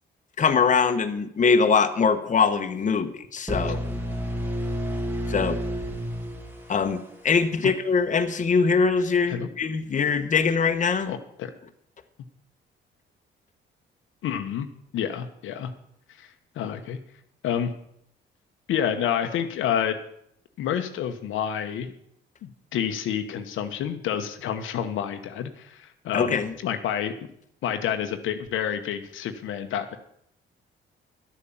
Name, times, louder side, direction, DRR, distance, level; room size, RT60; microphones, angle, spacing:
voice 1, 0.4-3.8 5.3-5.6 6.7-11.1 26.1-26.5, left 5 dB, 40° left, 7 dB, 1.2 m, -22 dB
sound 1, 3.5-7.4, equal, 10° right, 2.9 m, -30 dB
voice 2, 11.1-11.5 14.2-14.7 14.9-15.7 16.2-17.0 17.4-17.7 18.7-20.0 20.6-21.9 22.4-27.1 27.6-30.0, left 9 dB, 80° left, 7 dB, 1.1 m, -29 dB
11.5 x 8.6 x 7.1 m, 0.72 s
cardioid pair, 90°, 20 cm